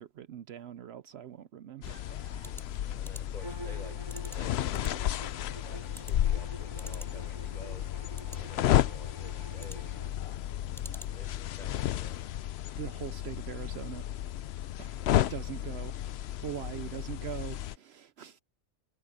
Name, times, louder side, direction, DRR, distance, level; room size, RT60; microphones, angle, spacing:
voice 1, 0.0-2.6 12.8-14.1 14.8-15.9 16.4-18.4, right 11 dB, 65° right, 0.8 m, -42 dB
sound 1, 1.8-17.8, left 12 dB, 65° left, 0.7 m, -33 dB
sound 2, 2.3-11.4, equal, ahead, 2.8 m, -52 dB
voice 2, 2.8-7.9 8.3-12.2 15.3-15.5 16.4-17.0, left 1 dB, 35° left, 6.4 m, -53 dB
Bowed string instrument, 3.4-10.1, right 2 dB, 20° right, 5.0 m, -48 dB
omnidirectional pair, 1.2 m